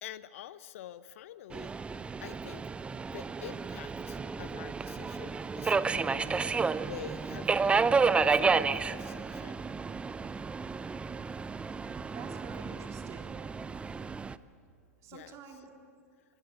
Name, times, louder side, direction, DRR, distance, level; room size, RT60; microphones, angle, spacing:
voice 1, 0.0-2.7 3.1-6.4 6.8-7.9 8.2-9.6 15.1-15.4, left 11 dB, 60° left, 15 dB, 0.9 m, -47 dB
Subway metro underground, 1.5-14.3, right 4 dB, 15° right, 0.6 m, -31 dB
voice 2, 11.1-13.4 15.0-15.7, right 6 dB, 40° right, 2 dB, 3.9 m, -50 dB
26.5 x 22.5 x 8.3 m, 2.2 s
figure-of-eight pair, 95°, 8 cm